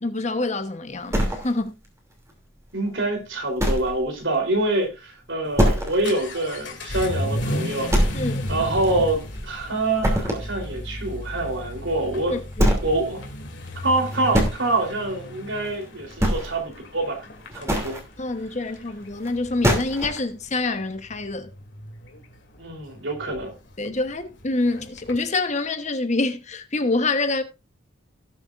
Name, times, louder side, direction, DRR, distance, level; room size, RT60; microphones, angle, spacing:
voice 1, 0.0-1.8 8.1-8.4 12.3-12.8 18.2-21.5 23.8-27.4, left 2 dB, 35° left, 1.1 m, -26 dB
sound 1, 1.1-1.9 2.3-2.4 2.9-3.0 3.6-4.0 4.3-4.4 4.8-4.9 5.6-6.1 6.5-6.6 7.1-7.2 7.9-8.5 8.8-9.6 10.0-10.5 11.9-12.0 12.5-13.0 13.9-14.6 15.6-15.8 16.1-16.7 17.4-18.0 19.2-19.3 19.6-20.2, equal, 15° right, 2.7 m, -22 dB
voice 2, 2.7-8.2 8.5-12.4 12.8-13.3 13.8-17.2 17.5-18.0 22.6-23.5, right 2 dB, 70° right, 3.7 m, -26 dB
Vehicle / Accelerating revving vroom, 5.5-25.3, left 1 dB, 65° left, 2.5 m, -35 dB
18.0 x 7.2 x 2.5 m
head